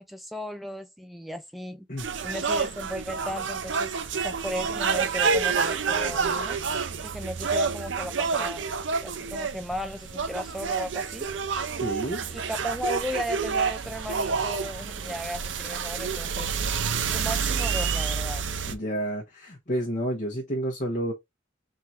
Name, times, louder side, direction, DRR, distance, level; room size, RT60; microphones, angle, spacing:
voice 1, 0.0-1.9 2.2-6.6 7.0-8.7 9.0-11.3 12.3-16.5 17.1-18.4, equal, ahead, 0.6 m, -35 dB
sound 1, 2.0-18.7, right 5 dB, 70° right, 0.6 m, -28 dB
voice 2, 11.8-12.2 18.7-21.1, right 1 dB, 45° left, 1.1 m, -30 dB
3.8 x 2.8 x 4.3 m
head